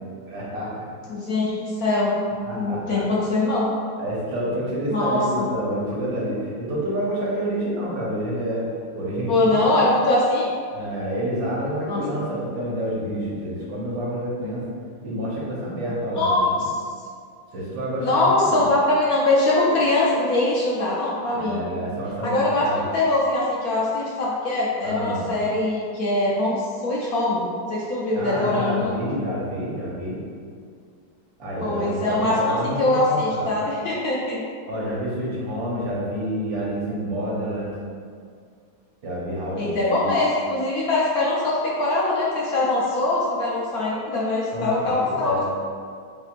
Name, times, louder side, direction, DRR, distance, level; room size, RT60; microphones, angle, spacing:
voice 1, 0.3-0.9 2.5-3.0 4.0-8.7 8.9-9.8 10.7-14.7 15.0-16.6 17.5-18.7 21.3-22.8 24.8-25.3 28.1-30.2 31.4-33.5 34.7-37.8 39.0-40.2 44.5-45.4, equal, 75° right, -6 dB, 1.8 m, -28 dB
voice 2, 1.1-2.2 2.5-3.7 4.9-5.5 9.3-10.5 11.9-12.0 16.2-16.7 18.0-21.6 22.2-22.7 22.9-28.9 31.6-34.4 39.6-45.4, left 2 dB, 65° left, -6 dB, 1.0 m, -22 dB
7.2 x 2.7 x 2.5 m, 2.2 s
omnidirectional pair, 2.1 m